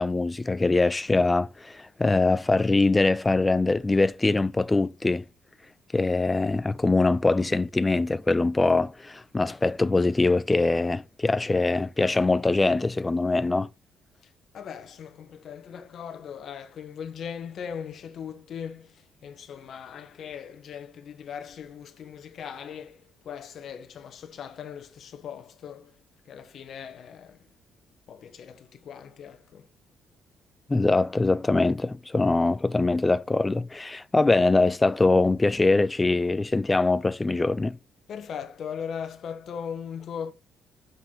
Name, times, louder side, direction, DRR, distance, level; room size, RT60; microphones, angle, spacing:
voice 1, 0.0-5.2 5.9-13.7 30.7-37.8, left 3 dB, 15° left, 0.5 m, -23 dB
voice 2, 14.5-26.0 26.3-27.4 28.1-29.7 38.1-40.3, left 7 dB, 50° left, 1.4 m, -39 dB
8.3 x 7.6 x 4.0 m
cardioid pair, 150°, 0 cm